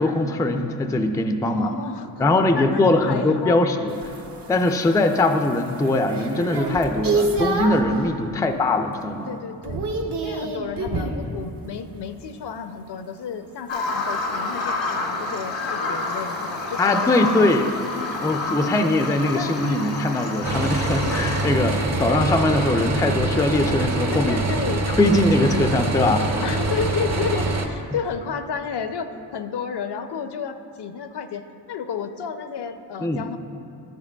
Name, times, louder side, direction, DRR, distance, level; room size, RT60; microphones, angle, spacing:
voice 1, 0.0-1.7 2.2-4.1 4.5-9.3 16.8-17.7 18.2-24.4 25.0-26.3 33.0-33.2, left 2 dB, 10° left, 6 dB, 0.3 m, -21 dB
voice 2, 1.4-2.3 2.5-3.6 8.3-8.6 9.3-9.8 10.2-17.7 18.5-18.9 19.4-19.6 24.1-24.8 26.4-33.4, left 6 dB, 65° left, 9 dB, 0.5 m, -32 dB
sound 1, 3.9-7.9 8.4-8.9 9.1-11.2 13.7-22.1, right 3 dB, 65° right, 0.9 m, -31 dB
Bird vocalization bird call bird song, 13.7-21.4, left 3 dB, 90° left, 1.1 m, -28 dB
sound 2, 20.4-27.7, right 2 dB, 35° right, 0.7 m, -24 dB
10.5 x 8.2 x 2.3 m, 2.5 s
cardioid pair, 60°, 45 cm